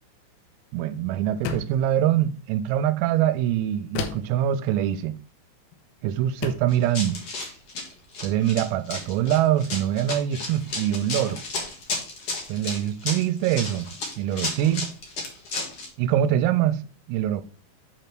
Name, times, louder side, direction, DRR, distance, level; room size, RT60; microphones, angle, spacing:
voice 1, 0.7-5.2 6.0-7.2 8.2-11.4 12.5-13.9 14.2-14.9 16.0-16.8 17.1-17.4, right 11 dB, 90° right, 3.3 m, -24 dB
sound 1, 1.4-1.9 4.0-4.4 5.7-5.9 6.4-6.8, left 8 dB, 85° left, 3.6 m, -32 dB
Run, 6.7-15.9, left 3 dB, 70° left, 1.4 m, -33 dB
8.8 x 3.3 x 5.9 m
omnidirectional pair, 5.9 m